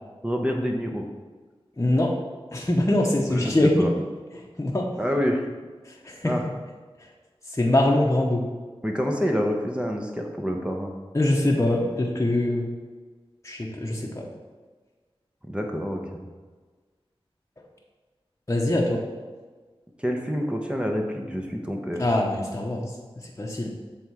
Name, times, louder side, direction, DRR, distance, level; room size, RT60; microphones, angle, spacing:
voice 1, 0.2-1.1 3.3-3.9 5.0-5.5 6.2-6.5 8.8-10.9 15.4-16.2 20.0-22.1, equal, 10° right, 1 dB, 0.8 m, -27 dB
voice 2, 1.8-2.1 2.5-3.7 4.6-4.9 6.0-6.3 7.6-8.4 11.1-12.7 13.4-14.1 18.5-19.0 22.0-22.9 23.4-23.7, left 1 dB, 30° left, -1 dB, 0.9 m, -23 dB
7.2 x 3.6 x 4.6 m, 1.4 s
wide cardioid pair, 45°, 10 cm